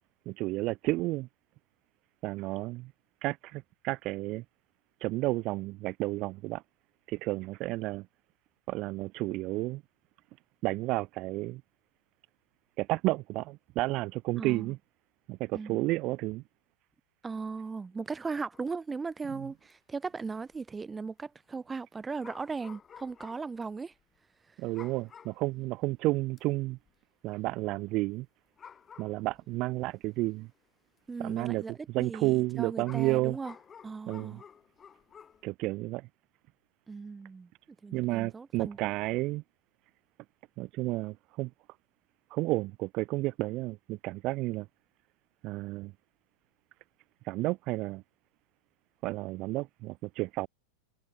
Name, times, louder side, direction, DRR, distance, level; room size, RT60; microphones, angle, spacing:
voice 1, 0.3-1.3 2.2-2.9 3.2-4.4 5.0-6.6 7.1-8.1 8.7-9.8 10.6-11.6 12.8-14.8 15.3-16.4 24.6-26.8 27.2-28.3 29.0-30.5 31.2-31.6 31.9-33.4 34.1-34.4 35.4-36.1 37.9-39.4 40.6-41.5 42.3-44.7 45.4-45.9 47.2-48.0 49.0-50.5, right 20 dB, 40° right, 0.5 m, -31 dB
voice 2, 14.3-14.7 15.5-15.9 17.2-23.9 31.1-33.5 33.8-34.4 36.9-37.5 37.8-38.8, right 4 dB, 15° right, 0.8 m, -38 dB
sound 1, 18.5-18.8 19.1-19.2 19.5-19.7 20.5-20.8 22.2-23.6 23.9-24.0 24.7-25.5 25.9-26.0 26.4-26.9 28.2-28.3 28.6-29.6 30.4-30.5 32.8-35.4, left 7 dB, 20° left, 7.7 m, -52 dB
figure-of-eight pair, 90°, 0 cm